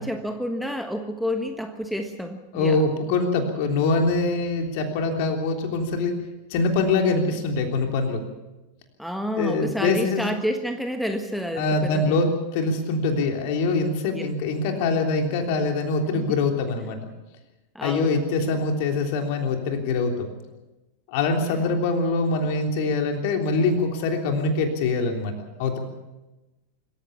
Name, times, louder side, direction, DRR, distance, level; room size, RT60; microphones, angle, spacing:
voice 1, 0.0-2.8 9.0-12.3 14.1-14.2 16.1-16.2 17.7-18.4 21.4-21.6, equal, ahead, 6 dB, 1.4 m, -29 dB
voice 2, 2.5-6.1 6.5-8.2 9.4-10.2 11.6-17.0 17.8-20.3 21.1-25.3 25.6-25.8, left 3 dB, 50° left, 3 dB, 3.4 m, -24 dB
25.5 x 14.5 x 7.2 m, 1.1 s
figure-of-eight pair, 90°, 0 cm